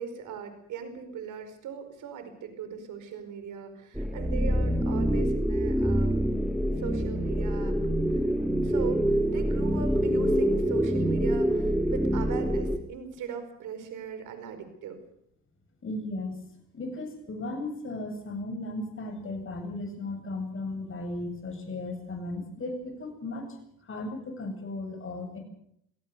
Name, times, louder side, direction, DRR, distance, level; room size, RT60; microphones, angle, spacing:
voice 1, 0.0-6.2 6.8-7.7 8.1-8.2 8.6-15.0, right 7 dB, 85° right, 9 dB, 5.0 m, -39 dB
sound 1, 3.9-12.8, equal, 5° right, 2.7 m, -26 dB
voice 2, 15.8-16.3 16.7-23.5 23.8-25.4, left 2 dB, 45° left, 5 dB, 7.9 m, -35 dB
25.0 x 18.0 x 6.9 m, 0.72 s
cardioid pair, 90°, 30 cm